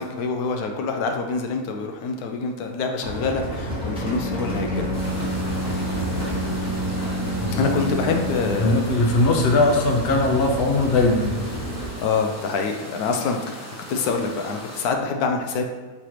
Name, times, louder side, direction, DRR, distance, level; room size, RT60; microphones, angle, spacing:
voice 1, 0.0-4.9 7.5-8.8 12.0-15.7, left 4 dB, 80° left, 4 dB, 1.1 m, -26 dB
sound 1, 3.0-11.9, equal, 5° right, 1.0 m, -30 dB
Bowed string instrument, 3.7-8.8, right 1 dB, 60° right, 1.0 m, -30 dB
sound 2, 4.9-14.8, equal, 20° left, 0.4 m, -39 dB
voice 2, 7.4-7.7 8.4-11.3, left 2 dB, 55° left, 1 dB, 0.7 m, -20 dB
4.3 x 4.0 x 3.1 m, 1.3 s
omnidirectional pair, 1.6 m